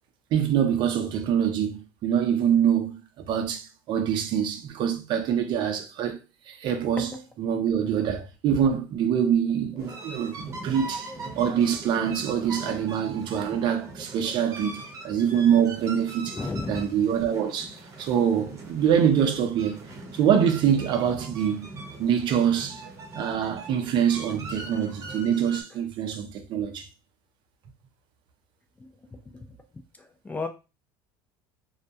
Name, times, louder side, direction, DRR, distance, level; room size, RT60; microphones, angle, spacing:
voice 1, 0.3-6.2 6.5-7.1 7.4-16.4 16.7-19.8 20.1-21.7 22.0-22.8 23.1-26.9, right 8 dB, 50° right, 0.5 m, -25 dB
sound 1, 9.8-25.6, right 2 dB, 30° right, 0.8 m, -41 dB
voice 2, 16.3-16.9 28.8-29.6 30.0-30.5, left 3 dB, 15° left, 0.4 m, -35 dB
2.2 x 2.1 x 2.7 m
supercardioid pair, 100°, 10 cm